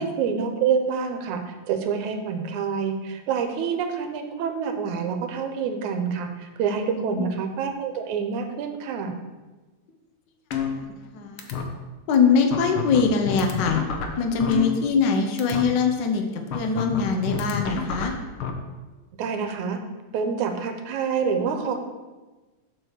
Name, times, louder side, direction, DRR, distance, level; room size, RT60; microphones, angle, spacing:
voice 1, 0.0-1.4 1.7-9.1 19.2-19.8 20.1-21.8, right 6 dB, 85° right, 6 dB, 2.3 m, -27 dB
voice 2, 6.9-7.3 10.6-11.5 12.1-13.8 14.2-18.2, left 5 dB, 90° left, 4 dB, 0.9 m, -23 dB
sound 1, 10.5-11.1 11.4-11.6 12.1-12.2 12.5-15.1 15.4-15.6 16.5-18.5, left 7 dB, 70° left, 1.3 m, -29 dB
7.6 x 4.7 x 6.5 m, 1.2 s
omnidirectional pair, 3.3 m